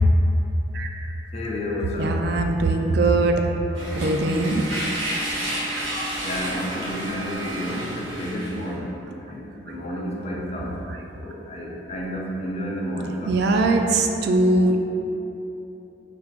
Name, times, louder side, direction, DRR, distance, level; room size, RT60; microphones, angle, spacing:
voice 1, 0.7-1.1 2.0-3.4 3.9-4.6 5.7-5.8 13.3-14.8, right 2 dB, 60° right, 3 dB, 0.3 m, -21 dB
voice 2, 1.3-2.3 6.2-9.0 9.3-10.8 11.2-13.4, equal, 35° left, -2 dB, 0.5 m, -31 dB
sound 1, 3.8-8.7, right 1 dB, 85° right, 1.1 m, -30 dB
4.6 x 3.4 x 2.4 m, 3.0 s
head